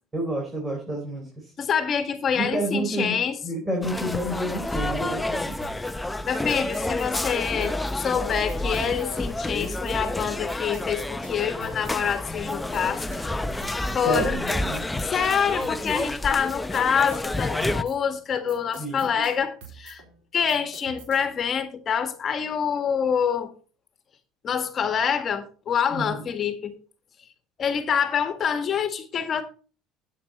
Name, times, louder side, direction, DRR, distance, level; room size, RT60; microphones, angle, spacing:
voice 1, 0.1-1.5 2.3-3.2 3.4-5.6 13.9-14.8 18.8-19.2 25.9-26.2, right 1 dB, 20° right, 4.3 m, -29 dB
voice 2, 1.6-3.3 6.3-13.2 13.9-14.4 15.1-20.0 20.3-23.5 24.4-26.7 27.6-29.4, left 7 dB, 40° left, 1.6 m, -26 dB
sound 1, 3.8-17.8, left 2 dB, 10° left, 0.7 m, -29 dB
sound 2, 5.6-21.5, right 6 dB, 75° right, 3.9 m, -48 dB
8.8 x 8.6 x 4.2 m
supercardioid pair, 95°, 0 cm